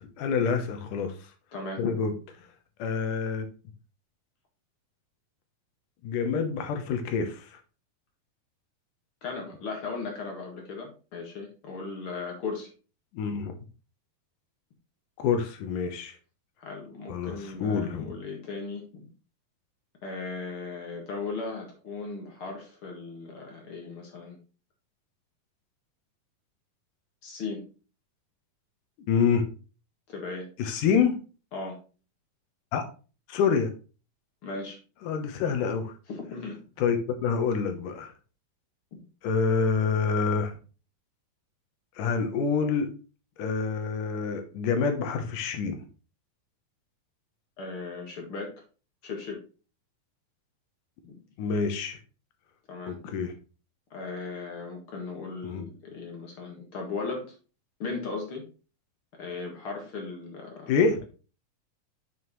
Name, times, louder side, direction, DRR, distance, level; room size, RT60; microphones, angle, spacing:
voice 1, 0.2-1.1 1.8-2.1 2.8-3.5 6.0-7.5 13.1-13.5 15.2-16.2 17.1-18.1 29.1-29.5 30.6-31.2 32.7-32.8 33.3-33.7 35.0-35.9 36.8-38.1 39.2-40.5 42.0-42.9 43.4-45.8 51.4-52.0 52.9-53.3 55.4-55.6 60.7-61.1, left 5 dB, 70° left, 7 dB, 2.5 m, -27 dB
voice 2, 1.5-2.0 9.2-12.7 16.6-19.1 20.0-24.4 27.2-27.7 30.1-30.5 31.5-31.8 34.4-34.8 36.1-36.6 38.9-39.0 47.6-48.5 49.0-49.4 51.0-51.1 52.7-53.0 53.9-57.3 57.8-58.5 59.2-60.7, left 4 dB, 45° left, 1 dB, 2.1 m, -37 dB
7.3 x 6.2 x 3.1 m, 0.34 s
omnidirectional pair, 4.1 m